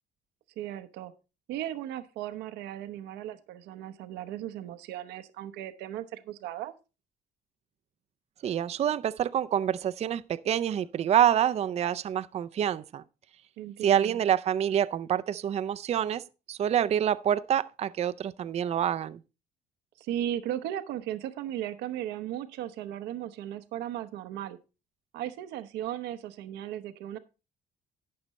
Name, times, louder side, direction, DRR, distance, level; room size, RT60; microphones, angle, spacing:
voice 1, 0.6-1.1 1.5-6.7 13.6-14.2 20.0-24.6 25.1-27.2, right 11 dB, 90° right, 0.9 m, -36 dB
voice 2, 8.4-13.0 13.8-16.2 16.5-19.2, right 10 dB, 40° right, 0.5 m, -27 dB
12.0 x 8.7 x 3.1 m
cardioid pair, 110°, 17 cm